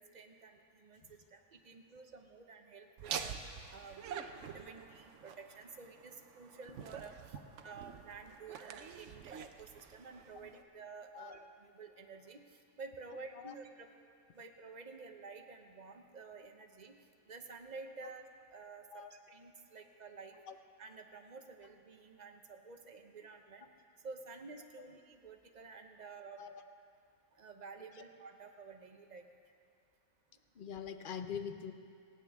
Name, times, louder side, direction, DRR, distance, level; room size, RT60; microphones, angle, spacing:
voice 1, 0.0-3.4 3.7-4.1 4.3-7.4 7.6-12.4 12.8-13.9 14.3-16.9 17.3-18.2 18.5-20.4 20.8-23.7 24.0-26.4 27.4-29.3, right 4 dB, 35° right, 5 dB, 0.8 m, -51 dB
Laughter, 3.0-10.6, right 7 dB, 65° right, 0.9 m, -46 dB
voice 2, 30.5-31.7, left 7 dB, 50° left, 8 dB, 0.7 m, -44 dB
26.0 x 8.7 x 3.6 m, 2.6 s
omnidirectional pair, 1.5 m